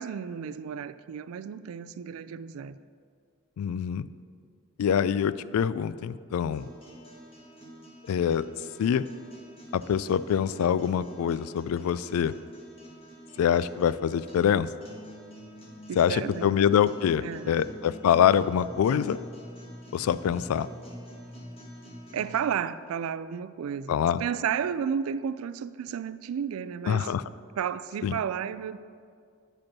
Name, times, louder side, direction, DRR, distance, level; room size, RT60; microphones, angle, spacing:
voice 1, 0.0-2.8 15.9-16.6 17.2-17.7 22.1-27.1 27.6-28.8, right 7 dB, 75° right, 15 dB, 0.3 m, -32 dB
voice 2, 3.6-4.1 4.8-6.7 8.1-8.5 8.8-9.0 9.7-12.3 13.4-14.7 16.0-19.2 19.9-20.7 23.9-24.2 26.9-27.2 28.0-28.2, left 8 dB, 85° left, 16 dB, 0.3 m, -25 dB
sound 1, 6.4-22.4, equal, 30° left, 1.6 m, -47 dB
8.8 x 5.2 x 6.0 m, 2.2 s
head